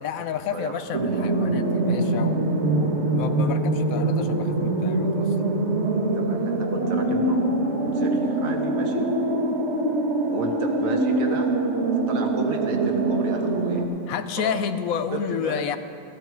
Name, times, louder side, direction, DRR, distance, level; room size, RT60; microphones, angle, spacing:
voice 1, 0.0-5.3 14.1-15.8, left 7 dB, 80° left, 10 dB, 1.2 m, -30 dB
sound 1, 0.9-13.9, right 2 dB, 55° right, 1.6 m, -24 dB
voice 2, 6.1-7.5 7.9-9.1 10.3-11.5 12.1-13.8 14.4-14.6 15.1-15.7, right 4 dB, 75° right, 2 dB, 1.5 m, -33 dB
14.5 x 13.5 x 4.6 m, 2.7 s
omnidirectional pair, 1.4 m